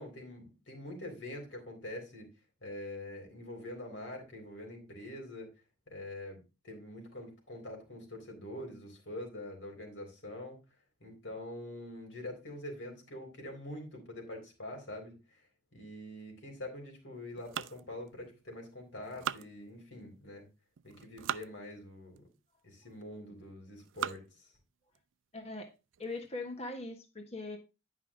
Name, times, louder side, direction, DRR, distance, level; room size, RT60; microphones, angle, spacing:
voice 1, 0.0-2.3 2.6-5.5 5.9-6.4 6.6-10.6 11.0-15.2 15.7-20.5 20.8-22.2 22.6-24.5, left 1 dB, 70° left, 4.0 m, -45 dB
sound 1, 17.4-18.6 19.0-20.1 20.8-21.5 22.2-22.3 23.0-23.3 23.8-24.4 24.9-25.0 25.4-25.5 25.9-26.2, right 9 dB, 80° right, 0.4 m, -40 dB
voice 2, 25.3-25.7 26.0-27.6, left 2 dB, 30° left, 1.4 m, -40 dB
10.5 x 5.6 x 3.8 m
head